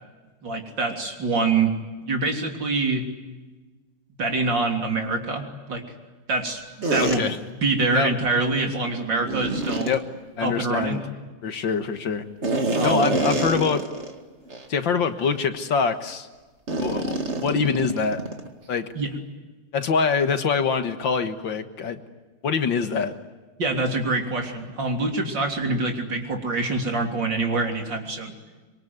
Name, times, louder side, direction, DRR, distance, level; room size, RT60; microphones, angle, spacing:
voice 1, 0.4-1.7 2.0-3.0 4.2-5.8 6.3-7.2 7.6-9.9 10.4-11.0 12.7-13.1 19.0-19.1 23.6-28.3, right 3 dB, 60° right, 3 dB, 4.0 m, -25 dB
sound 1, 6.8-7.2 9.3-10.0 12.4-14.1 14.5-14.7 15.2-15.4 16.7-18.5, right 2 dB, 35° right, 2.3 m, -26 dB
voice 2, 7.0-7.4 7.9-8.1 9.8-10.0 10.4-11.0 11.4-12.2 12.8-13.8 14.7-16.3 16.8-18.2 18.7-18.9 19.7-22.0 22.4-23.1, left 5 dB, 65° left, 8 dB, 2.2 m, -24 dB
25.5 x 24.0 x 9.5 m, 1.2 s
omnidirectional pair, 2.2 m